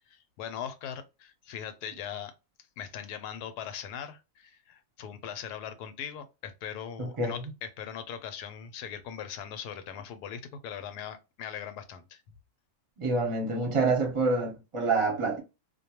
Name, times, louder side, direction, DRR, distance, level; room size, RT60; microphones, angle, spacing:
voice 1, 0.1-2.3 2.8-12.2, left 8 dB, 90° left, 1.1 m, -40 dB
voice 2, 7.0-7.4 13.0-15.4, right 3 dB, 25° right, 0.7 m, -27 dB
2.6 x 2.2 x 2.8 m
omnidirectional pair, 1.6 m